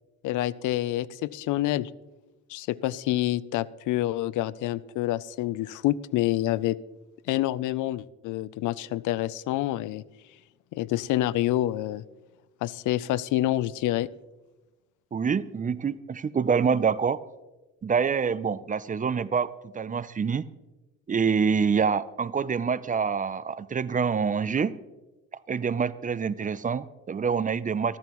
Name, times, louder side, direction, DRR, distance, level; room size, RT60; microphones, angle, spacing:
voice 1, 0.2-1.9 2.5-6.8 7.3-10.0 10.7-12.0 12.6-14.1, left 15 dB, 85° left, 20 dB, 0.5 m, -27 dB
voice 2, 15.1-17.2 17.8-20.4 21.1-24.7 25.5-28.0, right 6 dB, 25° right, 17 dB, 0.5 m, -26 dB
14.0 x 14.0 x 3.0 m, 1.1 s
cardioid pair, 90°, 30 cm